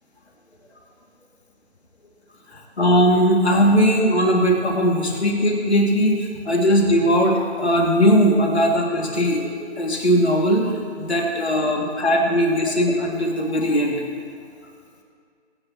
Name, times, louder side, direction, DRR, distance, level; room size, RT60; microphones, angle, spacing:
voice 1, 2.5-14.0, equal, 65° left, -1 dB, 2.6 m, -19 dB
23.0 x 8.8 x 3.0 m, 2.3 s
figure-of-eight pair, 150°, 35 cm